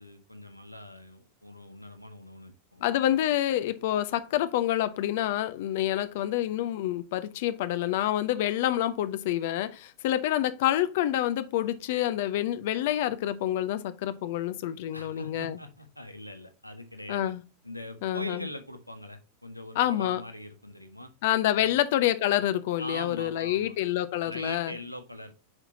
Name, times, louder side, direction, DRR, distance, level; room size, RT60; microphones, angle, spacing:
voice 1, 0.0-2.9 14.9-17.3 17.6-21.1 21.6-21.7 22.8-23.8 24.2-25.3, left 1 dB, 90° left, 1.3 m, -42 dB
voice 2, 2.8-15.6 17.1-17.4 18.0-18.4 19.8-20.2 21.2-24.7, left 12 dB, 50° left, 0.8 m, -27 dB
8.0 x 5.8 x 2.8 m
figure-of-eight pair, 90°, 0 cm